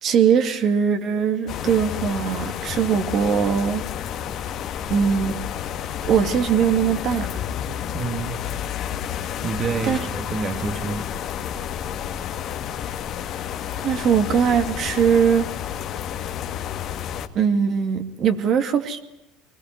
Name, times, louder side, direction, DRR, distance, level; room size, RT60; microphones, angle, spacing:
voice 1, 0.0-3.8 4.4-4.5 4.9-5.4 6.0-7.3 9.8-10.0 13.8-15.5 17.3-19.0, right 7 dB, 45° right, 7 dB, 2.4 m, -21 dB
sound 1, 1.5-17.3, left 9 dB, 50° left, 1.9 m, -30 dB
voice 2, 7.9-8.5 9.4-11.1, right 4 dB, 30° right, 7 dB, 2.1 m, -28 dB
22.0 x 20.0 x 9.5 m, 0.92 s
supercardioid pair, 105°, 0 cm